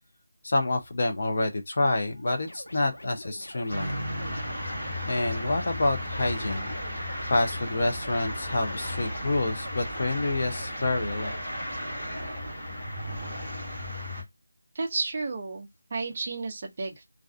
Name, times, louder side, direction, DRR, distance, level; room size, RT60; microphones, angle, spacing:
voice 1, 0.4-4.0 5.1-6.8 7.3-11.4, left 2 dB, 35° left, 0.5 m, -28 dB
sound 1, 2.1-12.2, left 1 dB, 80° left, 0.9 m, -46 dB
sound 2, 3.7-14.2, left 1 dB, 15° left, 1.4 m, -34 dB
voice 2, 14.7-17.0, right 3 dB, 25° right, 0.4 m, -32 dB
2.3 x 2.3 x 2.3 m
figure-of-eight pair, 175°, 0 cm